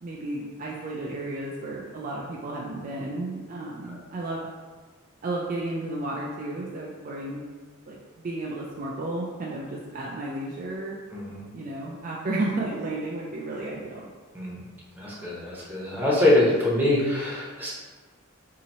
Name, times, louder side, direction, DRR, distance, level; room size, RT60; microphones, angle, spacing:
voice 1, 0.0-4.5 5.2-7.5 7.9-11.0 11.5-14.1, right 2 dB, 40° right, -4 dB, 0.4 m, -33 dB
voice 2, 11.1-11.4 14.3-14.6 15.0-17.7, left 1 dB, 10° right, -7 dB, 0.8 m, -24 dB
2.8 x 2.7 x 4.1 m, 1.4 s
head